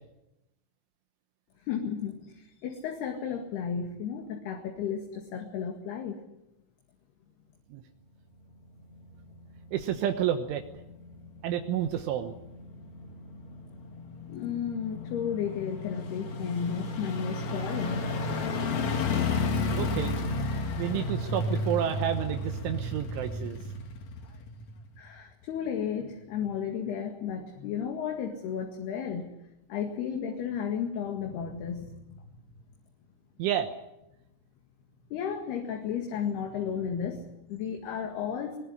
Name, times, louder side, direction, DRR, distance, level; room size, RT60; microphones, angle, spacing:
voice 1, 1.7-6.2 14.3-18.2 25.0-29.4 29.7-32.2 35.1-38.6, left 7 dB, 60° left, 4 dB, 3.7 m, -33 dB
sound 1, 8.5-25.1 25.4-25.5, left 3 dB, 45° left, 2.8 m, -33 dB
voice 2, 9.7-10.6 11.4-12.3 19.8-20.1 20.8-23.6 33.4-33.7, right 10 dB, 80° right, 6 dB, 3.6 m, -30 dB
22.5 x 21.0 x 9.8 m, 0.89 s
omnidirectional pair, 5.6 m